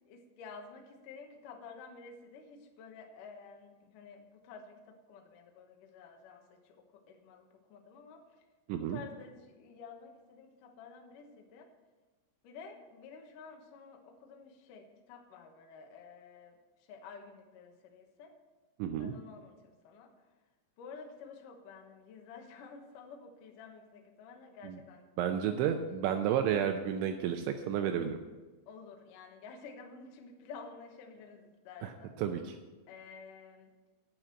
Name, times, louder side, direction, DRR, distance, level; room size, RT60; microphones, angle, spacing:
voice 1, 0.1-8.3 8.8-11.7 12.4-16.6 16.9-18.4 19.0-20.1 20.8-25.1 25.4-25.6 28.7-32.1 32.9-33.7, left 5 dB, 90° left, 3 dB, 1.8 m, -51 dB
voice 2, 8.7-9.0 18.8-19.1 24.6-24.8 25.2-28.2 31.8-31.9 32.2-32.6, right 9 dB, 85° right, 6 dB, 2.7 m, -31 dB
9.5 x 8.9 x 7.5 m, 1.2 s
omnidirectional pair, 5.9 m